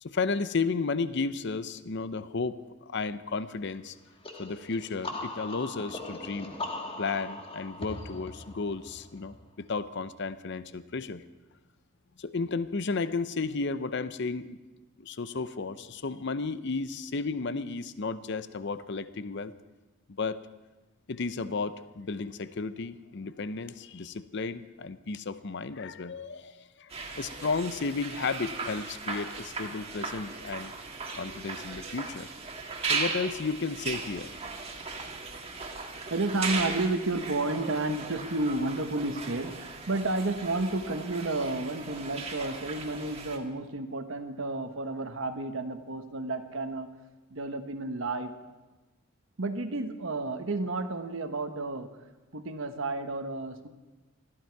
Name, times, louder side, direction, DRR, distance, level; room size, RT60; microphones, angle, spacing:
voice 1, 0.0-4.0 4.4-6.5 7.0-11.2 12.2-14.6 15.0-19.5 20.1-20.4 21.1-26.9 27.2-30.7 31.1-32.3 32.9-34.3, left 4 dB, 55° left, 14 dB, 0.6 m, -33 dB
sound 1, 4.2-9.8, left 2 dB, 25° left, 1.3 m, -40 dB
sound 2, 26.9-43.4, right 4 dB, 30° right, 1.7 m, -37 dB
voice 2, 36.1-46.9 47.3-48.3 49.4-51.9 52.3-53.7, right 2 dB, 65° right, 7 dB, 1.2 m, -31 dB
21.0 x 14.0 x 4.6 m, 1.1 s
head